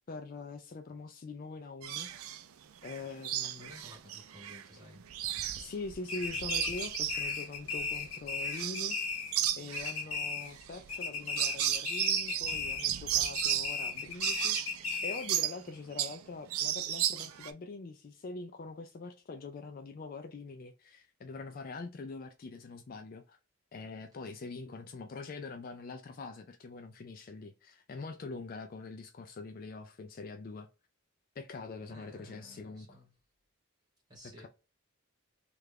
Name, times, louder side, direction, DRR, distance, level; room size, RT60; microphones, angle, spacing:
voice 1, 0.1-2.1 2.8-3.7 5.6-23.4 23.7-30.7 31.4-33.0 34.4-34.5, left 3 dB, 40° left, 0.3 m, -44 dB
sound 1, 1.8-2.4 2.8-4.6 5.0-9.0 9.3-16.2 16.5-17.5, right 11 dB, 75° right, 0.4 m, -34 dB
voice 2, 3.6-5.1 31.9-33.1 34.1-34.5, equal, 20° right, 1.4 m, -54 dB
sound 2, 6.1-9.5 9.7-10.6 10.9-12.9 13.2-15.4, left 5 dB, 85° left, 0.9 m, -36 dB
3.2 x 2.4 x 3.3 m
head